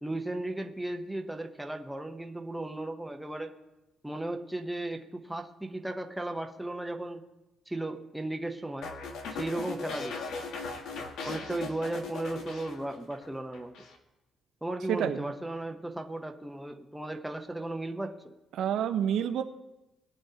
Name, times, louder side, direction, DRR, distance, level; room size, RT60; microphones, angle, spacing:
voice 1, 0.0-3.5 4.0-7.2 7.7-8.9 9.3-10.2 11.2-13.7 14.6-18.3, right 1 dB, 5° right, 3 dB, 0.8 m, -35 dB
sound 1, 8.8-13.3 13.5-14.0, left 3 dB, 80° left, 1.6 m, -38 dB
voice 2, 14.9-15.3 18.5-19.4, right 9 dB, 70° right, 7 dB, 0.7 m, -28 dB
21.0 x 9.5 x 2.8 m, 1.0 s
cardioid pair, 140°, 0 cm